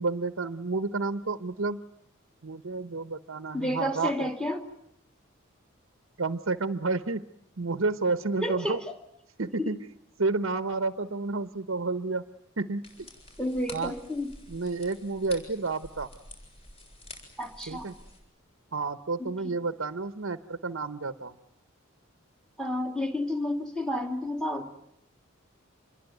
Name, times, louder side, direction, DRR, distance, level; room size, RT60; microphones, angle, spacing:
voice 1, 0.0-1.8 2.4-4.3 6.2-7.2 7.6-8.8 9.4-9.8 10.2-12.2 12.6-13.1 13.7-13.9 14.5-16.1 17.7-17.9 18.7-21.3, right 3 dB, 70° right, 11 dB, 1.0 m, -30 dB
voice 2, 3.5-4.6 8.4-8.9 9.6-9.7 13.4-14.3 17.4-17.9 19.2-19.5 22.6-24.7, left 1 dB, 5° left, 5 dB, 2.5 m, -31 dB
sound 1, 12.8-18.2, left 1 dB, 30° left, 7.6 m, -48 dB
27.0 x 22.5 x 9.2 m, 0.75 s
head